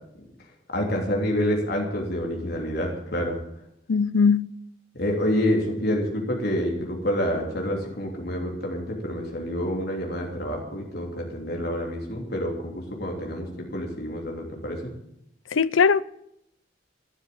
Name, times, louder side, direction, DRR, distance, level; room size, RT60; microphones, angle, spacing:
voice 1, 0.7-3.4 4.9-14.9, equal, 55° left, 3.3 m, -28 dB
voice 2, 3.9-4.5 15.5-16.0, left 5 dB, 85° left, 0.6 m, -19 dB
12.5 x 12.0 x 8.6 m
head